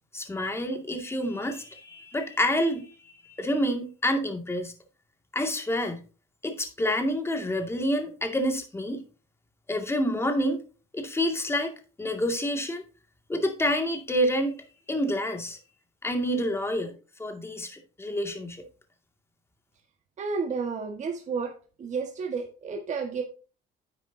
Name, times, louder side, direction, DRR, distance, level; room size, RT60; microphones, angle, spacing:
voice 1, 0.1-4.7 5.3-6.0 6.4-9.0 9.7-10.6 10.9-12.8 13.3-14.6 14.9-15.6 16.0-16.9 17.2-18.6, equal, 15° left, 2.2 m, -28 dB
voice 2, 20.2-21.5 21.8-23.2, right 5 dB, 45° right, 1.6 m, -31 dB
10.5 x 8.0 x 2.8 m
cardioid pair, 110°, 17 cm